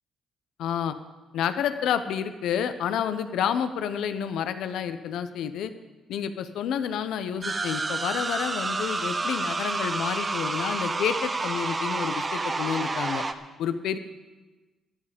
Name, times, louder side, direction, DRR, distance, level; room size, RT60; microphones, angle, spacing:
voice 1, 0.6-1.0 1.3-5.7 6.1-13.2 13.6-14.0, left 8 dB, 80° left, 10 dB, 0.9 m, -29 dB
sound 1, 7.4-13.3, right 3 dB, 30° right, 0.8 m, -29 dB
15.5 x 11.0 x 5.2 m, 1.2 s
cardioid pair, 90°, 0 cm